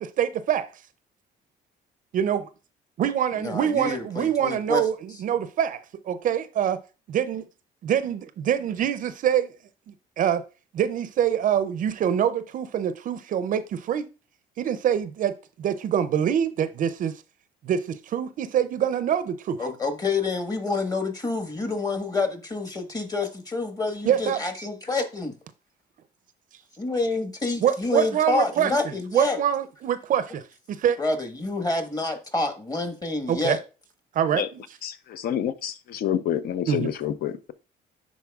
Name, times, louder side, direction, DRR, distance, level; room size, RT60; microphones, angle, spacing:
voice 1, 0.0-0.7 2.1-2.5 3.0-6.8 7.1-7.5 7.8-9.5 10.2-10.4 10.7-14.0 14.6-17.1 17.6-19.6 24.1-24.4 27.6-28.7 29.1-30.4 30.8-31.0 33.3-33.6 34.1-34.4 36.7-36.9, right 9 dB, 50° right, 0.5 m, -25 dB
voice 2, 3.4-4.8 19.6-25.3 26.8-29.4 31.0-33.6, left 3 dB, 20° left, 1.4 m, -28 dB
voice 3, 34.8-37.5, left 10 dB, 65° left, 0.7 m, -28 dB
10.5 x 4.1 x 2.4 m
cardioid pair, 110°, 17 cm